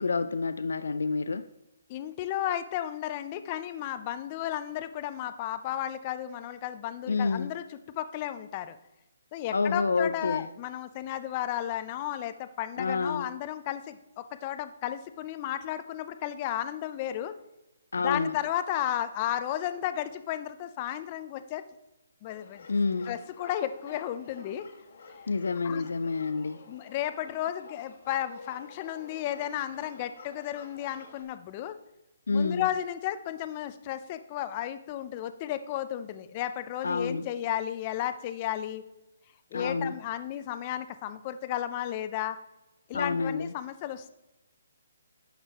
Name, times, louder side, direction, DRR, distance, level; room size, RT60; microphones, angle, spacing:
voice 1, 0.0-1.5 7.1-7.5 9.5-10.5 12.8-13.3 17.9-18.4 22.7-23.2 25.3-26.6 32.3-32.7 36.8-37.3 39.5-40.0 42.9-43.5, left 4 dB, 90° left, 0.4 m, -28 dB
voice 2, 1.9-8.8 9.3-17.3 18.0-21.7 22.2-22.7 23.1-24.6 25.6-25.9 26.7-31.8 32.3-38.8 39.5-42.4 42.9-44.1, left 11 dB, 25° left, 0.5 m, -33 dB
sound 1, 22.3-31.2, left 4 dB, 55° left, 1.4 m, -50 dB
10.0 x 6.6 x 3.0 m
hypercardioid pair, 165°, 0 cm